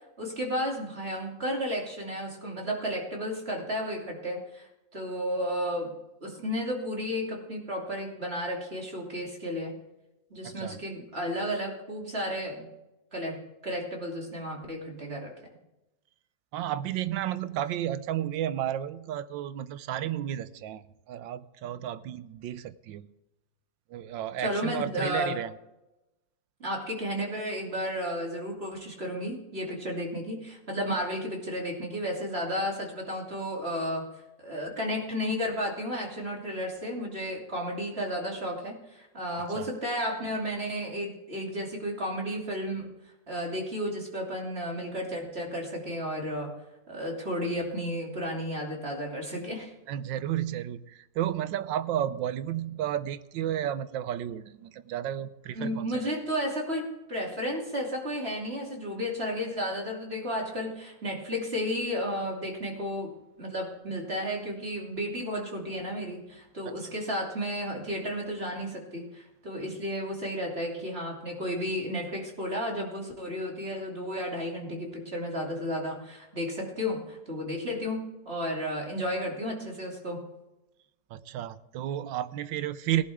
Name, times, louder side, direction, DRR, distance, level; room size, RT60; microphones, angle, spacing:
voice 1, 0.2-5.9 6.2-9.7 10.3-12.7 13.1-15.3 24.4-25.4 26.6-34.0 34.4-42.9 43.3-46.5 46.9-49.7 55.5-63.1 63.4-80.2, equal, 35° right, -1 dB, 3.1 m, -33 dB
voice 2, 10.4-10.8 16.5-23.1 23.9-25.5 39.5-39.7 49.9-56.1 81.1-83.0, right 11 dB, 85° right, 15 dB, 1.4 m, -32 dB
18.0 x 11.0 x 3.6 m, 0.96 s
omnidirectional pair, 2.0 m